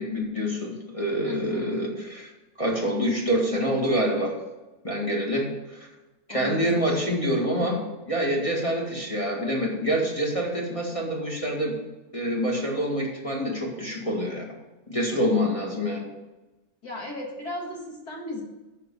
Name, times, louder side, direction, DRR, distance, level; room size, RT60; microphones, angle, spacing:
voice 1, 0.0-2.3 2.6-4.3 4.8-5.8 6.3-11.8 12.1-14.5 14.9-16.1, equal, 20° left, -2 dB, 2.0 m, -26 dB
voice 2, 1.2-1.9 6.3-7.0 16.8-18.4, left 2 dB, 65° left, -2 dB, 2.4 m, -36 dB
12.0 x 4.5 x 6.9 m, 1.1 s
omnidirectional pair, 1.7 m